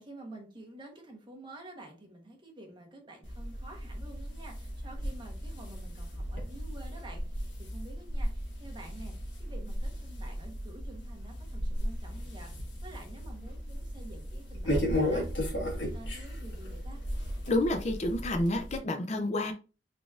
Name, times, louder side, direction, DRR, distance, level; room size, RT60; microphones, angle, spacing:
voice 1, 0.0-15.3 15.5-17.0, right 1 dB, 25° right, 1.1 m, -49 dB
sound 1, 3.2-18.8, equal, 85° left, 1.8 m, -36 dB
voice 2, 17.5-19.5, left 1 dB, 40° left, 0.5 m, -29 dB
4.5 x 4.0 x 2.4 m
head